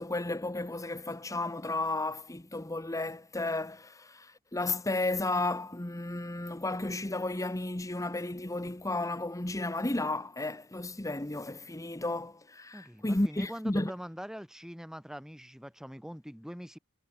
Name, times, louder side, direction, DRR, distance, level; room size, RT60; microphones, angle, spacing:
voice 1, 0.0-13.9, left 2 dB, 15° left, 1.0 m, -33 dB
voice 2, 12.7-16.8, equal, ahead, 4.4 m, -43 dB
head